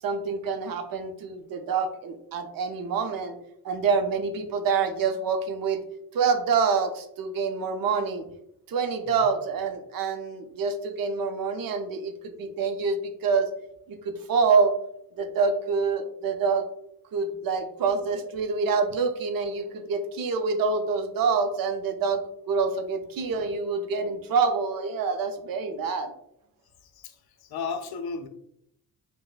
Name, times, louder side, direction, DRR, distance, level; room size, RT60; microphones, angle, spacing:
voice 1, 0.0-3.4 3.6-5.8 6.1-8.3 8.7-13.5 13.9-14.7 15.2-16.7 17.1-26.1, right 5 dB, 70° right, 0.6 m, -26 dB
voice 2, 26.8-28.3, left 5 dB, 85° left, 0.5 m, -35 dB
4.9 x 2.1 x 2.3 m
cardioid pair, 110°, 37 cm